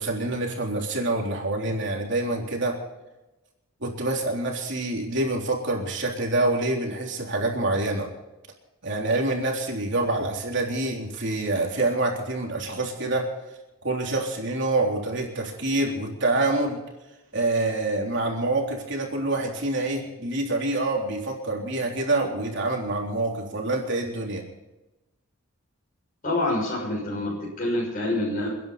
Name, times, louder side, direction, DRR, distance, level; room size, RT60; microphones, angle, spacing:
voice 1, 0.0-2.8 3.8-8.1 8.8-13.3 13.8-16.8 17.3-24.4, right 2 dB, 55° right, 0 dB, 3.6 m, -26 dB
voice 2, 26.2-28.5, left 1 dB, 40° left, -4 dB, 6.5 m, -26 dB
29.5 x 10.5 x 4.2 m, 1.0 s
head